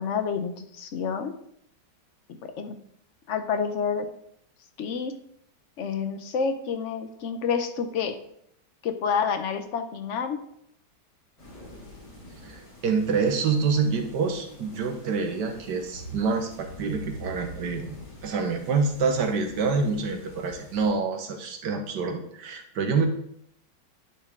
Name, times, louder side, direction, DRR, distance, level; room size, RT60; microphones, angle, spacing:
voice 1, 0.0-1.3 2.3-2.8 3.3-4.1 4.8-5.1 5.8-8.2 8.8-10.4, left 6 dB, 60° left, 8 dB, 0.8 m, -29 dB
sound 1, 11.4-20.9, equal, 90° left, 3.7 m, -45 dB
voice 2, 12.4-18.0 18.2-23.1, right 4 dB, 70° right, 5 dB, 1.6 m, -27 dB
11.0 x 4.4 x 3.6 m, 0.71 s
omnidirectional pair, 1.9 m